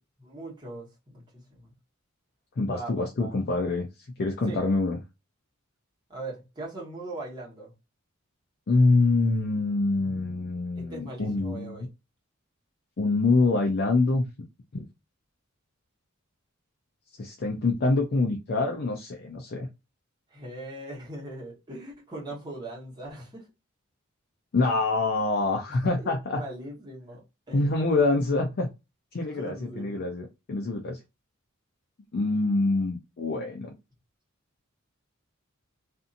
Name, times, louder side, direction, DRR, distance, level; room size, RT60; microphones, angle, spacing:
voice 1, 0.2-1.7 2.6-3.3 4.5-4.6 6.1-7.7 10.8-11.9 20.3-23.5 26.0-27.8 29.3-30.0, right 2 dB, 20° right, 1.2 m, -40 dB
voice 2, 2.6-3.9 4.2-5.0 8.7-11.9 13.0-14.3 14.7-14.8 17.2-19.7 24.5-26.4 27.5-28.7 29.1-31.0 32.1-33.7, left 3 dB, 50° left, 0.5 m, -25 dB
2.6 x 2.6 x 2.5 m
head